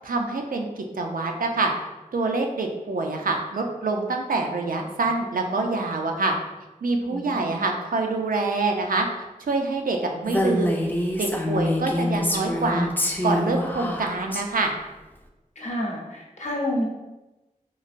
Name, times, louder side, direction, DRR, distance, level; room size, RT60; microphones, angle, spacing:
voice 1, 0.0-1.7 2.1-6.3 6.8-9.1 9.4-10.8 11.2-12.9 13.2-14.7, right 3 dB, 80° right, 3 dB, 0.4 m, -26 dB
voice 2, 7.1-7.6 15.6-16.8, left 1 dB, 55° left, -3 dB, 0.7 m, -29 dB
Female speech woman speaking, 10.3-14.4, left 1 dB, 15° left, 0.4 m, -25 dB
3.1 x 2.5 x 2.5 m, 1.1 s
wide cardioid pair, 40°, 14 cm